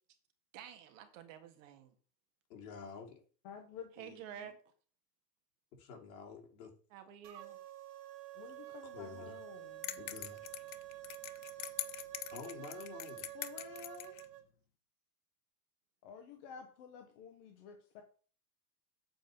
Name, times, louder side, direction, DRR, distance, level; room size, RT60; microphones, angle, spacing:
voice 1, 0.5-1.9 4.0-4.5 6.9-7.6, right 9 dB, 50° right, 8 dB, 1.7 m, -50 dB
voice 2, 2.5-3.2 5.8-6.7 8.9-9.4 10.0-10.4 12.3-13.3, left 6 dB, 60° left, 1 dB, 3.2 m, -49 dB
voice 3, 3.4-4.5 8.4-10.0 13.3-14.1 16.0-18.0, left 6 dB, 20° left, 5 dB, 0.4 m, -51 dB
sound 1, 7.2-14.4, right 16 dB, 70° right, 1.9 m, -49 dB
sound 2, 9.8-14.2, left 14 dB, 85° left, 1.0 m, -44 dB
7.8 x 4.9 x 6.6 m, 0.40 s
supercardioid pair, 165°, 49 cm